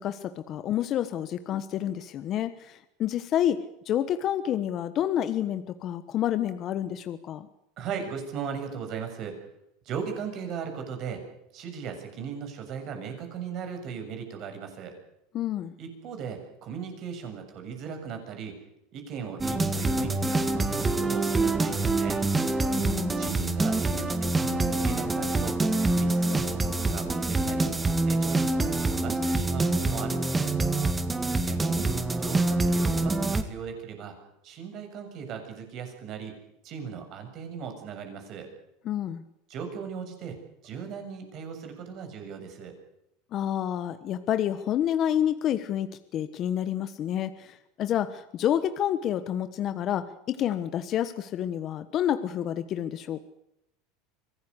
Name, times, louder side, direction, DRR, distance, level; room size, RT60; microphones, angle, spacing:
voice 1, 0.0-3.6 3.9-7.5 15.3-15.7 22.8-23.3 38.8-39.2 43.3-53.3, left 10 dB, 40° left, 11 dB, 1.2 m, -29 dB
voice 2, 7.8-9.4 9.9-11.2 11.5-14.9 15.8-18.6 18.9-22.2 23.1-25.6 25.9-27.7 28.0-30.5 31.4-34.1 34.4-36.3 36.6-38.5 39.5-40.4 40.6-42.7, right 7 dB, 45° right, 5 dB, 7.0 m, -37 dB
sound 1, 19.4-33.4, right 2 dB, 15° right, 1.9 m, -26 dB
24.5 x 17.5 x 8.2 m, 0.84 s
supercardioid pair, 130°, 0 cm